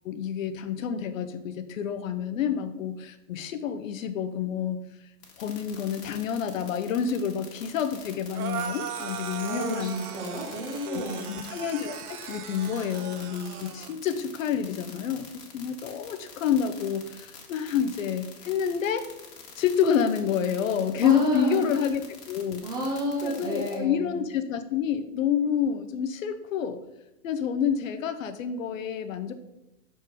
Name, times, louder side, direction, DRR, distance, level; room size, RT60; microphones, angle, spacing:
voice 1, 0.0-4.8 5.4-9.9 10.9-15.3 15.5-19.1 19.6-22.0 22.3-22.7 23.2-26.8 27.2-29.3, left 8 dB, 60° left, 9 dB, 0.7 m, -28 dB
sound 1, 5.2-23.8, left 6 dB, 85° left, 2.0 m, -46 dB
sound 2, 8.3-14.0, right 9 dB, 70° right, 0.7 m, -38 dB
voice 2, 9.5-11.3 21.0-21.8 22.6-24.2, equal, 10° right, -2 dB, 0.6 m, -30 dB
6.0 x 4.5 x 4.7 m, 0.91 s
hypercardioid pair, 150°, 46 cm